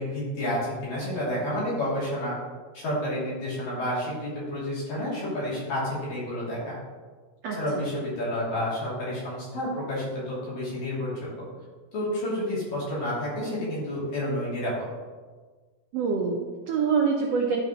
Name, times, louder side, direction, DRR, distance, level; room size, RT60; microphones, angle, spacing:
voice 1, 0.0-2.4 2.7-6.8 7.5-11.3 11.9-14.9, left 1 dB, 60° left, -7 dB, 4.1 m, -30 dB
voice 2, 7.4-7.8 15.9-17.6, right 5 dB, 70° right, 0 dB, 1.5 m, -26 dB
11.5 x 6.0 x 3.0 m, 1.4 s
omnidirectional pair, 3.7 m